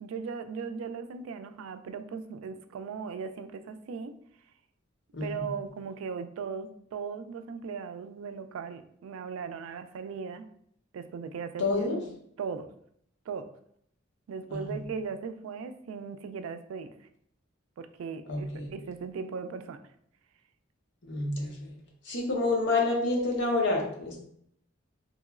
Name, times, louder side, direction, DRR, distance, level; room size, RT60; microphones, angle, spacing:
voice 1, 0.0-4.1 5.2-10.5 10.9-12.7 13.3-13.4 14.3-17.1 17.8-19.8, right 5 dB, 85° right, 9 dB, 0.3 m, -38 dB
voice 2, 5.1-5.5 11.6-12.0 14.5-14.8 18.3-18.7 21.0-21.7 22.0-24.2, left 2 dB, 60° left, 0 dB, 0.8 m, -28 dB
2.9 x 2.9 x 2.4 m, 0.68 s
head